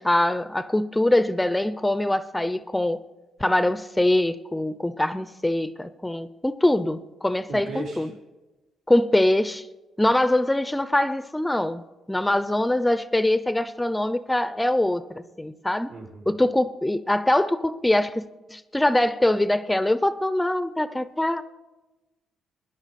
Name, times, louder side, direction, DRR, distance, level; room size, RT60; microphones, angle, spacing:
voice 1, 0.0-3.0 3.4-8.1 8.9-9.7 10.0-15.9 16.3-18.2 18.5-21.4, left 1 dB, 10° left, 0.5 m, -23 dB
voice 2, 7.5-8.1 15.9-16.3, right 3 dB, 80° right, 4.3 m, -36 dB
19.5 x 10.0 x 4.1 m
cardioid pair, 90°, 0 cm